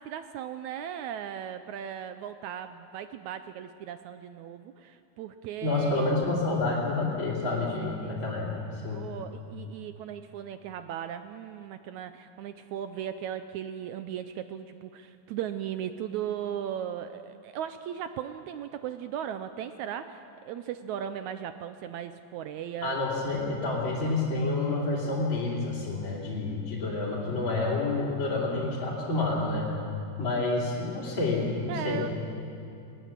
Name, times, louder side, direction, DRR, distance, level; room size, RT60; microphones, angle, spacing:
voice 1, 0.0-6.7 7.8-8.5 8.9-23.0 31.7-32.1, right 9 dB, 80° right, 10 dB, 1.7 m, -37 dB
voice 2, 5.6-9.1 22.8-29.6 30.2-32.1, left 2 dB, 35° left, -5 dB, 3.4 m, -29 dB
21.0 x 19.5 x 7.4 m, 2.7 s
omnidirectional pair, 4.0 m